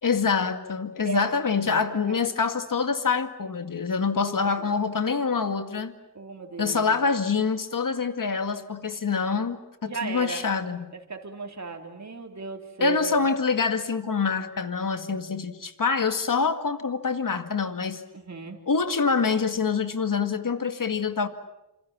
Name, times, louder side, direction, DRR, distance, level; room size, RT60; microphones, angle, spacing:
voice 1, 0.0-5.9 6.6-10.9 12.8-18.0 18.7-21.3, left 5 dB, 55° left, 9 dB, 2.2 m, -26 dB
voice 2, 1.1-1.4 1.8-2.2 4.2-4.3 6.2-6.9 9.9-10.5 11.1-13.2 18.1-18.6, right 4 dB, 45° right, 3 dB, 3.6 m, -35 dB
27.5 x 27.0 x 7.4 m, 0.90 s
wide cardioid pair, 70°, 38 cm